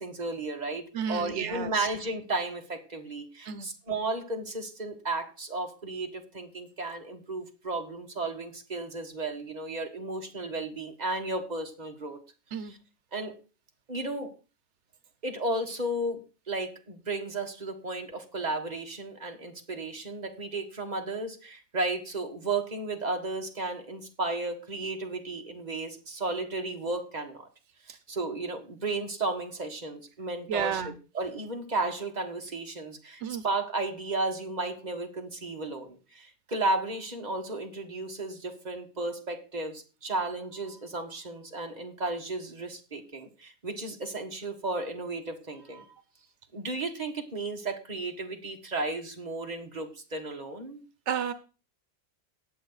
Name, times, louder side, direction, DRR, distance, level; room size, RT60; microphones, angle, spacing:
voice 1, 0.0-12.2 12.7-12.8 13.1-13.4 13.9-14.3 15.2-16.2 16.5-27.5 28.1-30.8 31.1-45.9 46.5-50.8, right 2 dB, 35° right, 3 dB, 1.8 m, -34 dB
voice 2, 0.9-1.9 3.4-3.7 12.5-12.7 27.9-28.0 30.5-30.9 33.2-33.4 51.1-51.3, right 7 dB, 85° right, 12 dB, 1.1 m, -32 dB
18.0 x 7.1 x 4.0 m, 0.33 s
omnidirectional pair, 1.2 m